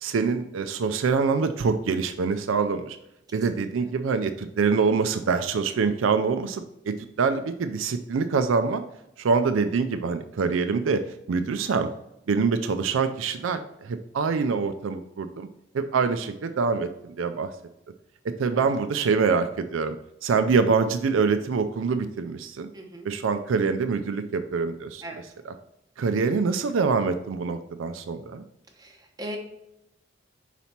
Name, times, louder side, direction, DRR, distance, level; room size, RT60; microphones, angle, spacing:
voice 1, 0.0-3.0 3.3-8.8 9.2-11.0 11.3-11.9 12.3-15.5 15.7-17.5 18.4-20.0 20.2-22.7 23.0-25.0 25.5-25.6 26.0-28.4, right 5 dB, 85° right, 9 dB, 0.4 m, -25 dB
voice 2, 3.3-3.6 16.2-16.4 18.5-18.6 22.7-23.1 25.0-25.2 28.8-29.4, right 1 dB, 20° right, 2 dB, 0.9 m, -39 dB
5.7 x 4.0 x 4.3 m, 0.85 s
head